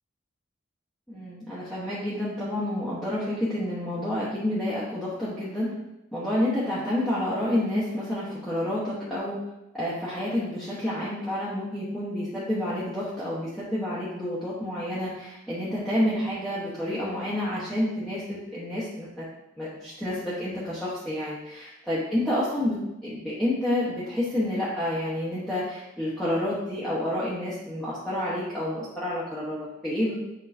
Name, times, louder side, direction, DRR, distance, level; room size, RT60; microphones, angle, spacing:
voice 1, 1.1-5.7 6.1-9.4 9.7-19.2 19.6-30.1, left 1 dB, ahead, -10 dB, 1.1 m, -29 dB
8.1 x 4.6 x 2.7 m, 0.92 s
head